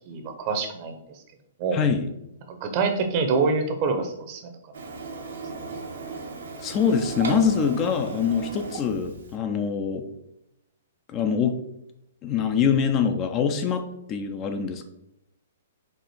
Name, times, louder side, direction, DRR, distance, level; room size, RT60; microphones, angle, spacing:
voice 1, 0.1-1.0 1.6-1.8 2.5-4.4, right 4 dB, 40° right, 6 dB, 0.8 m, -25 dB
voice 2, 1.7-2.1 6.6-10.1 11.1-11.6 12.2-13.8 14.1-14.9, left 6 dB, 30° left, 6 dB, 0.5 m, -24 dB
Printer, 4.7-9.4, right 4 dB, 75° right, 0.9 m, -36 dB
4.5 x 2.4 x 4.4 m, 0.83 s
hypercardioid pair, 130°, 0 cm